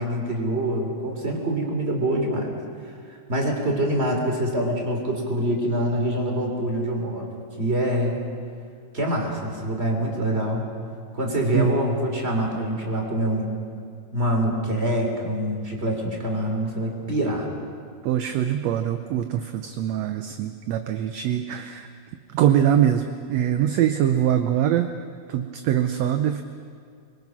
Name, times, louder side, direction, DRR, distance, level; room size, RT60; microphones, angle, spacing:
voice 1, 0.0-2.5 3.3-7.3 7.6-8.2 8.9-10.7 11.1-13.5 14.1-17.5, right 1 dB, 20° right, 1 dB, 3.3 m, -25 dB
voice 2, 18.0-21.9 22.3-24.9 25.3-26.4, right 10 dB, 75° right, 8 dB, 1.7 m, -23 dB
25.5 x 22.5 x 6.1 m, 2.3 s
omnidirectional pair, 3.7 m